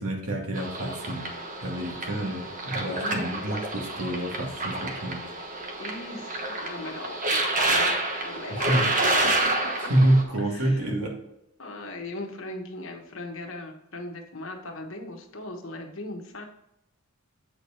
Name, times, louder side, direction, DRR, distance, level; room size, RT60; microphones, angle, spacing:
voice 1, 0.0-1.3 1.6-5.2 8.5-8.9 9.9-11.2, right 1 dB, 85° right, 1 dB, 2.0 m, -27 dB
sound 1, 0.5-10.2, right 2 dB, 35° right, 1.2 m, -29 dB
voice 2, 2.9-3.4 5.8-8.0 8.2-8.8 9.4-9.5 10.5-10.9 11.6-16.5, left 2 dB, 60° left, 3 dB, 1.3 m, -38 dB
8.1 x 4.8 x 4.4 m, 0.84 s
head